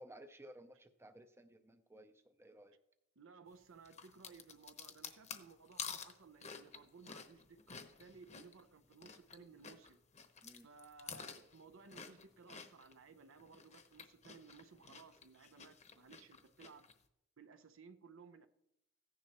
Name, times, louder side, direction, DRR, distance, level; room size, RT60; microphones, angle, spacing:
voice 1, 0.0-2.8 10.4-10.7, right 1 dB, 10° right, 0.6 m, -57 dB
voice 2, 3.2-10.0 10.6-16.9 17.4-18.5, right 5 dB, 65° right, 0.7 m, -59 dB
sound 1, 3.8-9.4 9.6-13.0 13.4-16.9, left 6 dB, 35° left, 0.9 m, -50 dB
15.0 x 10.5 x 3.0 m
head